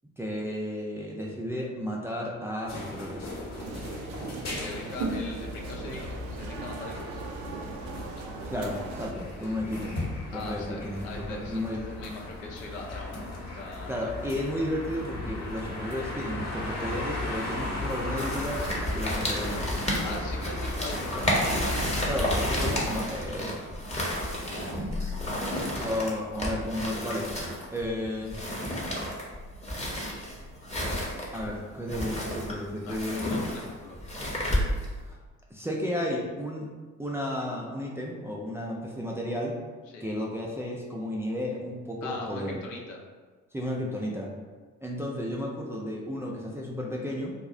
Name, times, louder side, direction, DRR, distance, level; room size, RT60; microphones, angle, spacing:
voice 1, 0.2-3.3 8.5-10.0 10.3-11.8 13.9-18.6 18.9-19.7 22.0-23.5 25.7-27.3 27.7-28.4 31.3-33.4 35.1-35.2 35.5-36.7 37.0-39.6 40.0-42.6 43.5-44.3 44.8-47.3, left 1 dB, 5° right, -3 dB, 0.3 m, -33 dB
sound 1, 2.7-22.5, left 2 dB, 45° left, 0.9 m, -37 dB
sound 2, 3.6-9.1, right 3 dB, 60° right, 0.5 m, -38 dB
voice 2, 4.4-7.2 10.3-13.9 20.0-21.3 30.8-31.1 32.8-34.0 39.9-40.1 42.0-43.0, left 3 dB, 75° left, 0 dB, 0.6 m, -40 dB
sound 3, 18.2-35.0, equal, 15° left, 0.8 m, -31 dB
2.3 x 2.0 x 3.7 m, 1.4 s
figure-of-eight pair, 50°, 39 cm